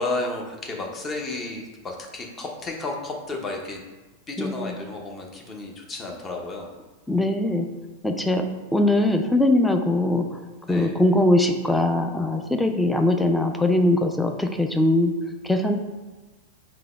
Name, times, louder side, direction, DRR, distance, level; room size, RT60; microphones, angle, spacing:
voice 1, 0.0-3.8 4.3-6.7 10.7-10.9, left 2 dB, 20° left, 1 dB, 0.8 m, -32 dB
voice 2, 4.4-4.7 7.1-7.7 8.0-10.3 10.7-15.1 15.4-15.8, left 1 dB, 5° left, 4 dB, 0.4 m, -21 dB
3.8 x 2.9 x 4.8 m, 1.2 s
figure-of-eight pair, 90°, 0 cm